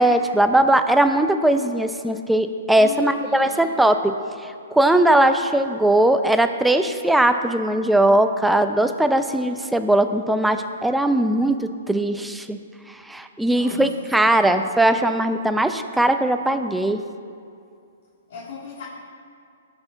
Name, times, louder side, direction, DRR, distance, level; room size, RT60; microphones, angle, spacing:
voice 1, 0.0-4.1 4.4-12.6 13.1-17.0, right 1 dB, 5° right, 8 dB, 0.5 m, -19 dB
voice 2, 2.7-3.8 13.4-14.5 18.3-18.8, left 5 dB, 65° left, -5 dB, 2.2 m, -38 dB
18.5 x 6.2 x 4.0 m, 2.4 s
hypercardioid pair, 140°, 0 cm